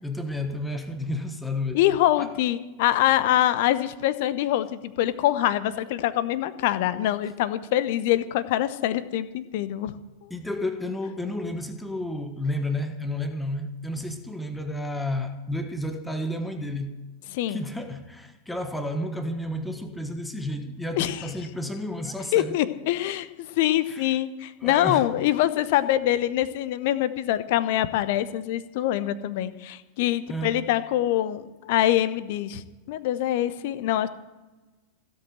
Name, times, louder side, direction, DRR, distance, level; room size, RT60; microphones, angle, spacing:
voice 1, 0.0-1.8 2.2-2.3 10.3-16.9 17.5-22.6 23.9-24.1 24.6-25.1 30.3-30.6, left 1 dB, 5° left, 1.4 m, -31 dB
voice 2, 1.7-9.9 17.3-17.6 21.0-21.3 22.3-32.6 32.9-34.1, left 13 dB, 50° left, 0.9 m, -24 dB
16.5 x 8.3 x 7.8 m
figure-of-eight pair, 90°, 0 cm